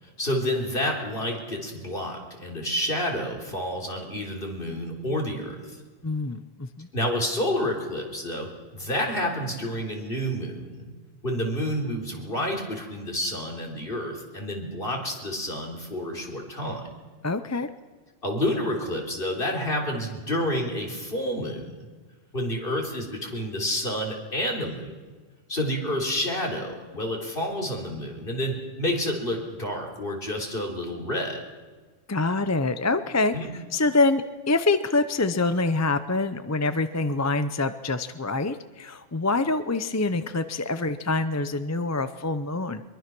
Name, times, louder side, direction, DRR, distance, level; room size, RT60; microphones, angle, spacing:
voice 1, 0.2-5.8 6.9-10.9 11.2-16.9 18.2-21.9 22.3-24.9 25.5-31.4 33.3-33.5, left 1 dB, 45° left, 1 dB, 3.8 m, -29 dB
voice 2, 6.0-6.9 17.2-17.7 32.1-33.3 33.7-42.8, left 3 dB, 20° left, 11 dB, 0.5 m, -25 dB
23.5 x 22.5 x 6.1 m, 1.4 s
omnidirectional pair, 1.3 m